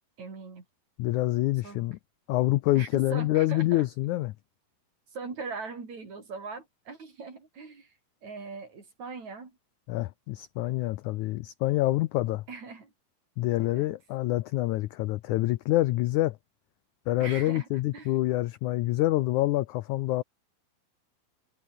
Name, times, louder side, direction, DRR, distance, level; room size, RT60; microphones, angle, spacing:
voice 1, 0.2-0.6 1.6-1.8 2.8-3.9 5.1-7.9 8.2-9.6 12.5-12.9 13.6-13.9 17.2-17.7 17.9-18.1, right 4 dB, 50° right, 6.2 m, -40 dB
voice 2, 1.0-2.0 2.3-4.3 9.9-12.4 13.4-16.4 17.1-20.2, left 17 dB, 80° left, 1.7 m, -26 dB
omnidirectional pair, 4.2 m